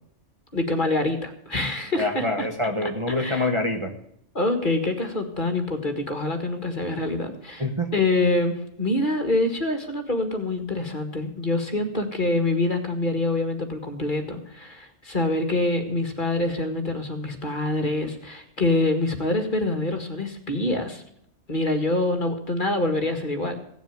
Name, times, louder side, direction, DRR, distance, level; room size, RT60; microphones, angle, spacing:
voice 1, 0.5-2.5 3.2-3.5 4.4-7.6 7.9-21.0 21.5-23.6, left 2 dB, 40° left, 6 dB, 2.0 m, -25 dB
voice 2, 1.9-3.9 7.6-7.9, left 1 dB, 25° right, 2 dB, 1.5 m, -26 dB
17.0 x 7.1 x 9.1 m, 0.74 s
omnidirectional pair, 1.3 m